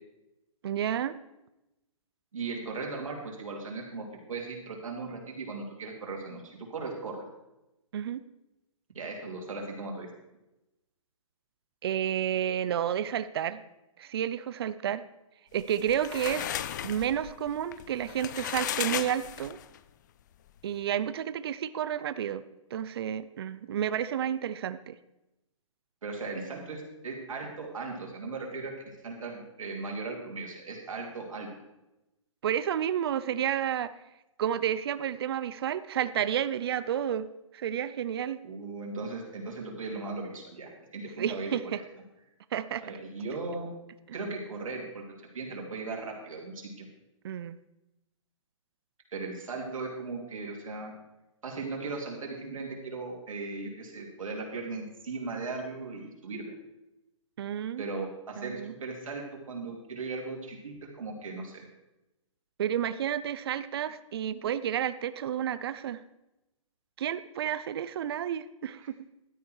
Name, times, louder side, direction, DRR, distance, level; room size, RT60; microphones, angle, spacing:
voice 1, 0.6-1.1 7.9-8.2 11.8-13.6 14.0-15.0 15.5-16.5 16.8-19.6 20.6-22.4 22.7-25.0 32.4-33.9 34.4-37.3 37.5-38.4 41.2-41.8 42.5-42.8 47.2-47.6 57.4-57.8 58.4-58.7 62.6-66.0 67.0-69.0, right 10 dB, 50° right, 14 dB, 0.6 m, -31 dB
voice 2, 2.3-7.2 8.9-10.1 26.0-28.7 29.0-31.5 38.4-41.8 42.8-43.7 44.1-46.9 49.1-50.9 51.4-56.5 57.8-61.7 68.8-68.9, right 3 dB, 75° right, 0 dB, 3.7 m, -37 dB
sound 1, 15.6-19.8, left 11 dB, 35° left, 0.5 m, -35 dB
12.5 x 9.8 x 4.8 m, 0.94 s
hypercardioid pair, 160°, 17 cm